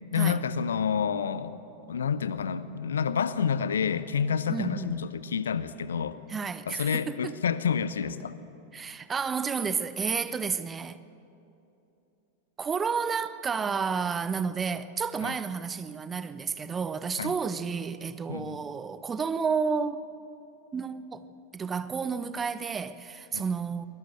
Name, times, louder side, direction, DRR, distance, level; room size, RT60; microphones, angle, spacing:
voice 1, 0.1-1.6 1.9-6.2 6.7-8.4 15.2-15.3 17.2-17.3 18.3-18.6 23.3-23.4, left 7 dB, 65° left, 0.8 m, -29 dB
voice 2, 4.5-4.9 6.3-7.4 8.7-11.0 12.6-20.0 20.7-21.3 21.5-23.9, right 5 dB, 20° right, 0.8 m, -31 dB
23.0 x 21.5 x 6.7 m
figure-of-eight pair, 90°, 0 cm